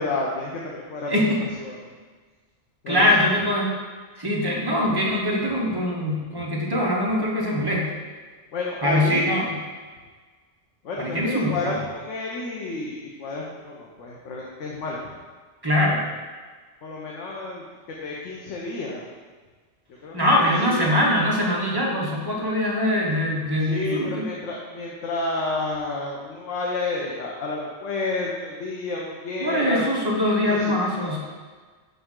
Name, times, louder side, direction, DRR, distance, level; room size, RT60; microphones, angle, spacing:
voice 1, 0.0-1.1 1.6-1.8 2.8-3.1 8.5-9.3 10.8-15.0 16.8-17.6 18.0-19.1 20.0-21.0 23.6-29.9 30.4-31.2, left 3 dB, 85° left, -3 dB, 1.1 m, -30 dB
voice 2, 1.1-1.4 2.9-3.7 4.2-7.9 8.8-9.5 11.0-11.8 15.6-16.0 20.1-24.3 29.4-31.2, left 1 dB, 20° right, -3 dB, 0.9 m, -22 dB
5.6 x 5.4 x 3.7 m, 1.5 s
omnidirectional pair, 1.2 m